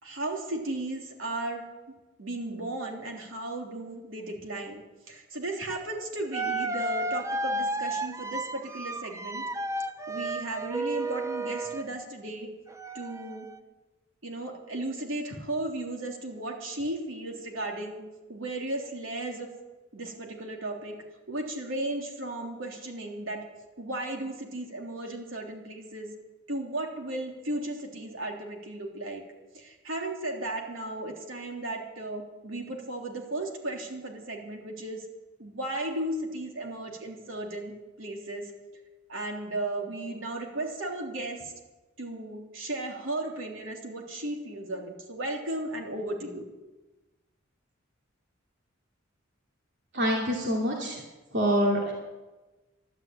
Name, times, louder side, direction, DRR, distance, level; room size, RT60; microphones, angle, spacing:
voice 1, 0.0-9.5 10.1-12.5 12.9-13.5 14.2-19.5 19.9-23.4 23.8-26.1 26.5-29.2 29.5-35.1 35.4-37.7 38.0-38.5 39.1-41.5 42.0-46.5, right 1 dB, 80° right, 1 dB, 3.5 m, -35 dB
sound 1, 5.7-5.8 6.3-11.9 12.7-13.6, right 2 dB, 15° right, 0.6 m, -32 dB
voice 2, 49.9-51.0 51.3-51.9, equal, 60° right, -1 dB, 2.7 m, -26 dB
13.5 x 12.0 x 8.9 m, 1.1 s
head